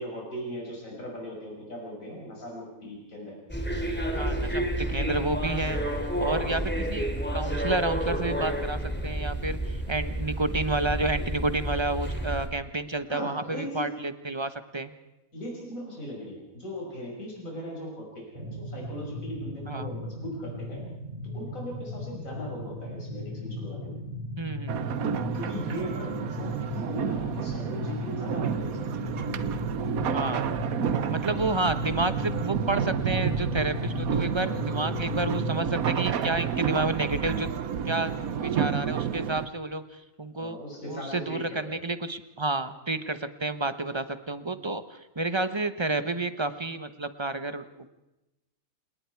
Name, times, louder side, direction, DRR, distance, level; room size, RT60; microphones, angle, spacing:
voice 1, 0.0-3.4 6.4-6.8 13.1-13.9 15.3-20.8 21.3-24.0 25.3-29.1 31.3-31.7 34.3-34.7 40.4-41.8, equal, 60° left, -2 dB, 6.2 m, -39 dB
sound 1, 3.5-12.5, equal, 5° left, 2.8 m, -30 dB
voice 2, 4.1-5.8 6.2-7.1 7.3-14.9 19.7-19.9 24.4-24.8 30.1-30.4 31.1-37.5 37.8-39.8 40.2-40.6 40.9-47.6, right 2 dB, 20° right, 11 dB, 0.9 m, -30 dB
sound 2, 18.3-35.7, left 1 dB, 40° right, 8.2 m, -36 dB
sound 3, 24.7-39.5, right 7 dB, 75° right, 1.4 m, -30 dB
28.5 x 19.5 x 4.7 m, 0.95 s
omnidirectional pair, 1.5 m